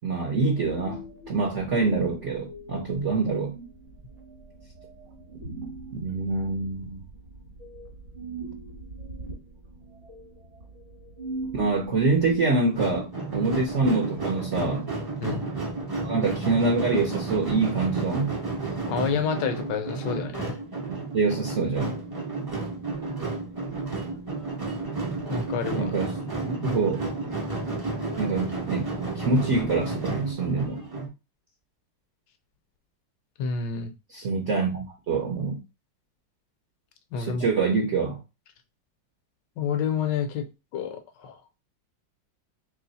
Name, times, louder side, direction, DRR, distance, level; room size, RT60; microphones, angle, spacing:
voice 1, 0.0-3.5 5.9-7.0 11.5-14.9 16.0-18.3 21.1-22.0 25.7-26.1 26.4-27.1 28.2-28.9 29.1-30.8 34.1-35.6 37.2-38.2, right 3 dB, 55° right, -1 dB, 0.8 m, -25 dB
sound 1, 0.5-12.4, right 2 dB, 40° right, 1.3 m, -42 dB
sound 2, 12.7-31.1, right 3 dB, 25° right, 0.5 m, -32 dB
voice 2, 15.2-15.5 18.8-20.6 25.3-25.9 33.4-33.9 37.1-37.5 39.6-40.5 40.7-41.3, left 6 dB, 75° left, 8 dB, 1.2 m, -29 dB
3.1 x 3.1 x 4.0 m, 0.27 s
omnidirectional pair, 2.1 m